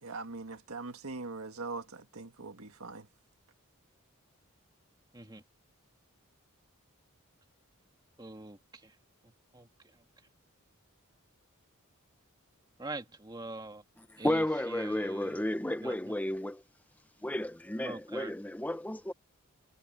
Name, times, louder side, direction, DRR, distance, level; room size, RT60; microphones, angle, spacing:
voice 1, 0.0-3.1, right 3 dB, 80° right, 1.7 m, -41 dB
voice 2, 8.2-8.9 9.2-9.7 12.8-13.8 14.2-15.4 15.8-16.1 17.8-18.3, right 2 dB, 20° right, 1.9 m, -43 dB
voice 3, 14.2-16.6 17.2-19.1, left 1 dB, 5° left, 0.6 m, -32 dB
head